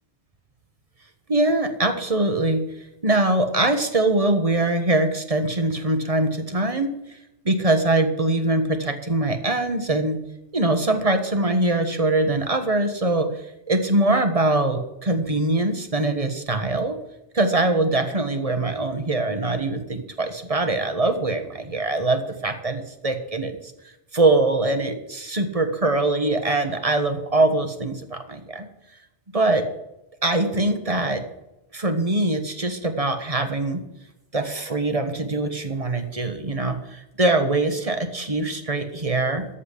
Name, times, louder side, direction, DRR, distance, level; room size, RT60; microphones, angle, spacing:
voice 1, 1.3-2.7 3.0-6.9 7.4-10.2 10.5-13.3 13.7-17.0 17.3-23.6 24.1-28.7 29.3-29.7 30.2-31.2 31.7-33.8 34.3-39.4, right 2 dB, 30° right, 7 dB, 1.4 m, -22 dB
13.5 x 5.6 x 8.4 m, 0.91 s
omnidirectional pair, 1.2 m